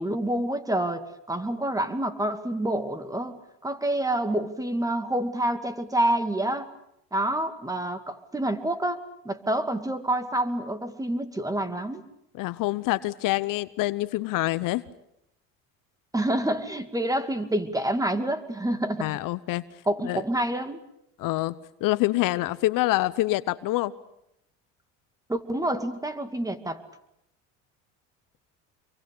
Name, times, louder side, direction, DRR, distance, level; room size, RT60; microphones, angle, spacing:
voice 1, 0.0-6.7 7.1-12.0 16.1-19.2 19.9-20.8 25.3-26.8, right 1 dB, 10° right, 10 dB, 2.4 m, -28 dB
voice 2, 12.4-14.8 19.0-19.6 20.1-20.2 21.2-21.5 21.8-23.9, left 18 dB, 60° left, 16 dB, 1.0 m, -26 dB
27.0 x 23.5 x 8.5 m, 0.80 s
supercardioid pair, 100°, 36 cm